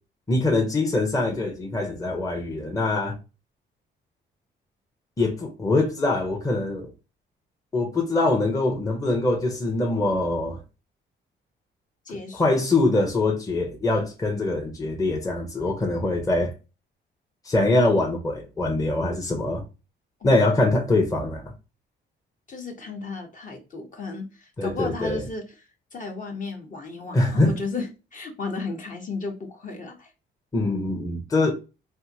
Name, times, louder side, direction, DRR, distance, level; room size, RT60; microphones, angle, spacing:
voice 1, 0.3-3.2 5.2-6.9 7.7-10.6 12.3-16.5 17.4-19.6 20.2-21.5 24.6-25.2 27.1-27.5 30.5-31.5, left 2 dB, 15° left, 0.8 m, -23 dB
voice 2, 12.1-12.6 20.2-20.5 22.5-25.4 25.9-30.1, left 3 dB, 40° left, 1.0 m, -34 dB
3.5 x 2.6 x 2.7 m
cardioid pair, 90°, 20 cm